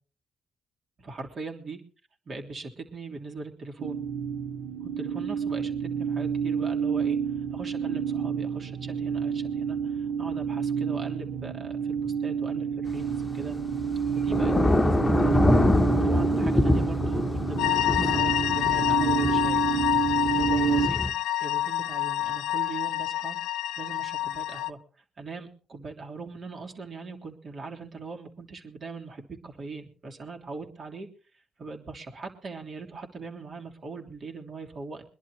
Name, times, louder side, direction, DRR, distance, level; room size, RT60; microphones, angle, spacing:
voice 1, 1.0-1.8 2.3-4.0 4.8-7.2 7.5-13.6 14.1-15.6 16.0-19.6 20.2-21.1 21.4-23.4 23.8-24.8 25.2-31.1 31.6-35.0, right 4 dB, 55° right, 1 dB, 3.2 m, -40 dB
sound 1, 3.8-20.9, right 7 dB, 85° right, 1.3 m, -29 dB
Thunder / Rain, 12.9-21.1, left 2 dB, 20° left, 1.0 m, -26 dB
sound 2, 17.6-24.7, left 14 dB, 80° left, 0.8 m, -27 dB
24.0 x 11.5 x 3.2 m, 0.37 s
supercardioid pair, 55°, 0 cm